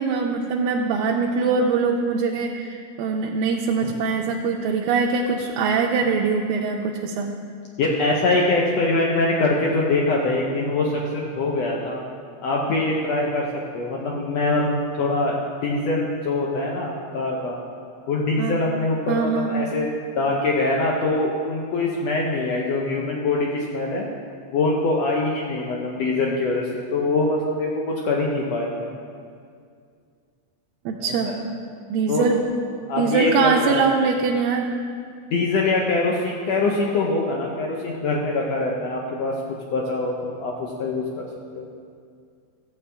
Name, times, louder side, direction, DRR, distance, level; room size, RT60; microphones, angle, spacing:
voice 1, 0.0-7.3 18.4-18.6 19.1-19.5 30.9-31.3 31.9-32.4 33.0-34.7, right 5 dB, 85° right, 0 dB, 2.3 m, -22 dB
voice 2, 7.8-12.0 12.4-13.5 13.7-15.4 15.6-17.6 18.1-24.1 24.5-28.9 31.2-31.4 32.1-32.2 32.9-33.8 35.3-39.3 39.7-41.2 41.6-41.7, left 2 dB, 80° left, -2 dB, 1.5 m, -23 dB
14.0 x 8.5 x 3.4 m, 2.2 s
omnidirectional pair, 4.0 m